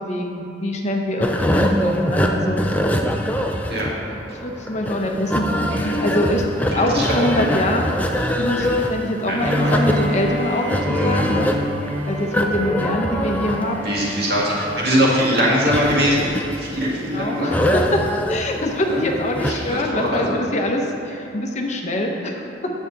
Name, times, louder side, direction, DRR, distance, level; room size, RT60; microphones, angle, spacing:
voice 1, 0.0-2.6 4.3-7.9 8.4-11.5 12.0-13.9 17.0-18.0 18.3-22.7, left 1 dB, 40° left, 2 dB, 0.8 m, -24 dB
sound 1, 1.2-19.9, equal, 10° left, 0.4 m, -24 dB
voice 2, 6.7-7.5 8.6-8.8 9.3-9.7 10.9-11.2 13.8-16.3 16.6-17.6 18.9-19.0 19.4-20.4, equal, 60° right, -5 dB, 1.9 m, -22 dB
Bowed string instrument, 9.4-15.4, equal, 35° right, 0.7 m, -28 dB
8.9 x 7.1 x 3.9 m, 2.7 s
head